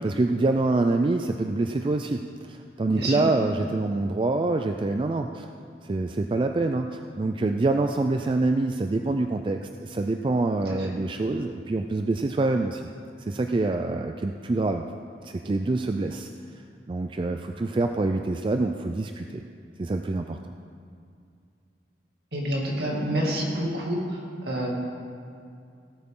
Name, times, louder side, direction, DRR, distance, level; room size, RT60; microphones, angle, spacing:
voice 1, 0.0-5.5 5.8-12.8 13.2-14.9 15.2-16.3 16.9-19.4 19.8-20.5, right 2 dB, 30° right, 5 dB, 0.3 m, -26 dB
voice 2, 2.9-3.2 10.7-10.8 22.3-24.7, right 1 dB, 65° right, -3 dB, 2.4 m, -28 dB
17.5 x 8.8 x 3.8 m, 2.3 s
head